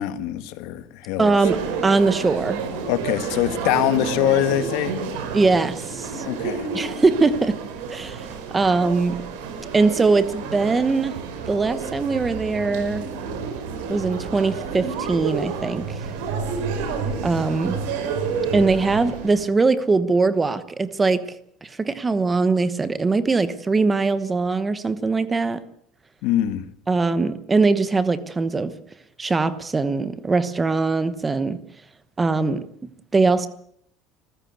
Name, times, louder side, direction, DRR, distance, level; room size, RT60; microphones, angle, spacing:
voice 1, 0.0-1.4 2.8-4.9 6.2-6.7 26.2-26.7, left 13 dB, 65° left, 12 dB, 1.7 m, -23 dB
voice 2, 1.2-2.6 5.3-6.2 6.7-7.6 7.9-8.3 8.5-9.2 9.7-11.1 11.5-13.1 13.9-16.0 17.2-17.8 18.5-21.2 21.6-25.6 26.9-28.7 29.2-31.6 32.2-32.6 33.1-33.5, right 3 dB, 15° right, 14 dB, 1.0 m, -21 dB
sound 1, 1.4-19.5, right 5 dB, 85° right, 5.1 m, -30 dB
26.5 x 15.0 x 8.2 m, 0.68 s
cardioid pair, 165°, 0 cm